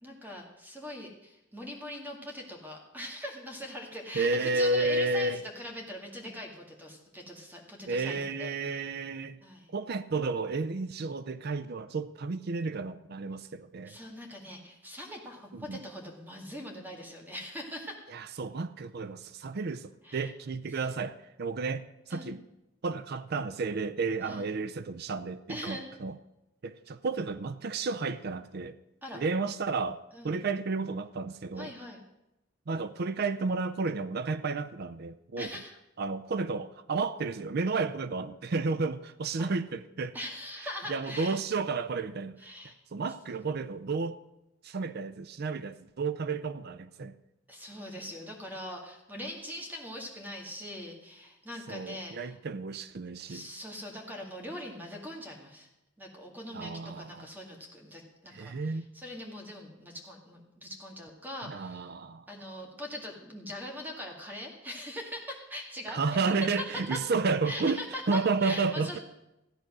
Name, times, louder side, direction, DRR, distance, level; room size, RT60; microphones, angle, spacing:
voice 1, 0.0-8.5 9.4-9.7 13.9-18.0 20.0-20.3 22.1-22.4 24.2-24.4 25.5-25.9 29.0-29.2 30.1-30.4 31.6-32.0 35.4-35.7 39.4-39.5 40.1-41.4 42.4-42.7 47.5-52.4 53.2-55.7 56.0-61.9 62.3-66.6 66.9-67.0 67.4-69.0, left 1 dB, 10° right, 1 dB, 2.0 m, -41 dB
voice 2, 4.1-5.4 7.9-9.4 9.7-14.0 15.5-15.8 18.1-22.4 22.8-26.1 26.6-28.7 29.1-31.7 32.7-35.5 36.0-40.1 40.6-42.4 42.9-44.2 44.6-47.1 51.7-53.5 56.5-57.3 58.3-58.9 61.5-62.2 65.9-67.8 68.1-69.0, right 3 dB, 55° right, 14 dB, 0.5 m, -32 dB
14.5 x 10.0 x 6.1 m, 0.91 s
head